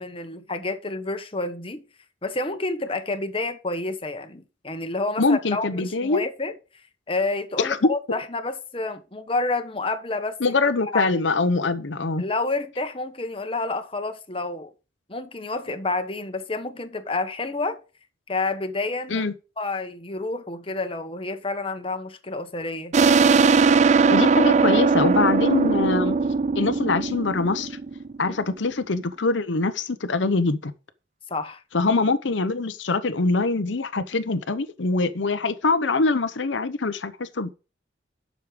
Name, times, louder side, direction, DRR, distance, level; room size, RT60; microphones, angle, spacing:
voice 1, 0.0-1.8 2.2-6.5 7.1-10.4 10.9-11.1 12.2-14.7 15.1-17.8 18.3-19.3 19.6-23.0 31.3-31.6, left 3 dB, 30° left, 1.2 m, -29 dB
voice 2, 5.2-6.2 7.6-7.9 10.4-12.2 19.1-19.3 24.1-26.2 26.5-27.8 28.2-30.7 31.7-37.5, left 3 dB, 80° left, 0.8 m, -23 dB
sound 1, 22.9-28.2, right 4 dB, 35° right, 0.4 m, -19 dB
10.5 x 6.5 x 5.0 m
head